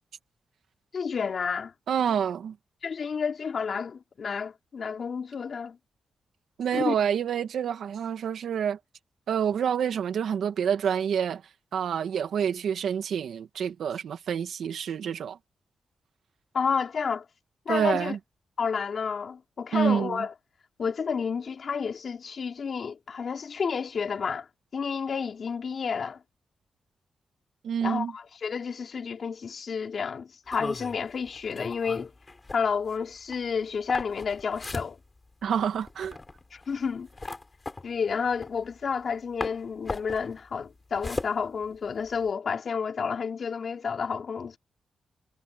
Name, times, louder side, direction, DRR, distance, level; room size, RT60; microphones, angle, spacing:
voice 1, 0.9-1.7 2.8-5.8 6.7-6.9 16.5-17.2 17.7-18.2 18.6-20.3 20.8-24.5 24.7-26.2 27.8-32.1 32.5-35.0 36.5-37.3 37.8-44.6, left 6 dB, 45° left, 4.5 m, -30 dB
voice 2, 1.9-2.5 6.6-8.8 9.3-11.4 11.7-15.4 17.7-18.2 19.7-20.2 27.6-28.1 35.4-36.2, right 8 dB, 75° right, 2.0 m, -27 dB
sound 1, 30.5-39.1 39.4-42.3, left 3 dB, 20° left, 5.2 m, -38 dB
wide cardioid pair, 175°, 0 cm